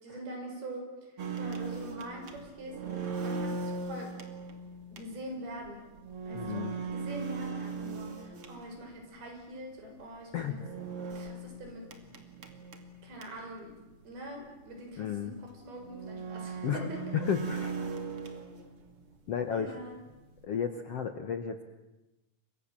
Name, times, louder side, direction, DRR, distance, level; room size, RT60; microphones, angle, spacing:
voice 1, 0.0-2.8 3.2-4.1 4.9-5.9 6.2-10.6 11.0-11.9 13.0-13.7 14.0-17.1 19.5-20.0, right 1 dB, 85° right, 3 dB, 7.8 m, -44 dB
sound 1, 1.2-9.0 10.5-13.6 13.9-14.0 14.3-14.4 15.1-15.2 15.8-19.0 19.3-20.4, right 4 dB, 40° right, 2.9 m, -39 dB
voice 2, 6.3-6.8 10.3-10.6 15.0-15.4 16.6-16.9 17.1-17.7 19.3-19.8 20.4-21.6, left 8 dB, 60° left, 8 dB, 1.6 m, -33 dB
29.5 x 24.5 x 7.5 m, 1.0 s
omnidirectional pair, 4.3 m